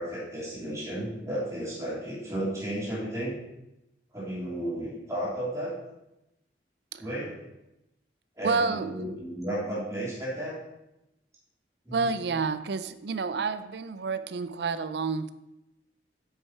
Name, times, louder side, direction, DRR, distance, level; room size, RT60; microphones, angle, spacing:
voice 1, 0.0-3.4 4.1-5.8 7.0-7.5 8.4-10.6 11.8-12.0, right 1 dB, 15° right, -6 dB, 3.0 m, -33 dB
voice 2, 8.4-8.9 11.9-15.3, right 4 dB, 65° right, 13 dB, 0.5 m, -29 dB
8.1 x 6.7 x 4.3 m, 0.90 s
head